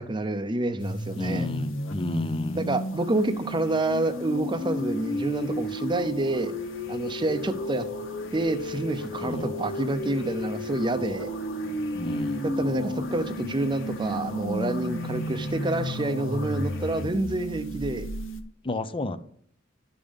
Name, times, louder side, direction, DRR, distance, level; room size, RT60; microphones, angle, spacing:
voice 1, 0.0-1.5 2.5-6.5 6.9-7.9 8.3-11.3 12.4-18.1, right 2 dB, 25° right, 10 dB, 0.6 m, -28 dB
sound 1, 0.8-18.4, equal, 80° left, 0.9 m, -33 dB
voice 2, 1.2-2.7 9.2-9.5 11.9-12.5 18.6-19.2, left 2 dB, 25° left, 13 dB, 0.6 m, -31 dB
sound 2, 2.9-17.0, left 2 dB, 60° left, 1.4 m, -43 dB
11.5 x 5.4 x 5.2 m, 0.62 s
head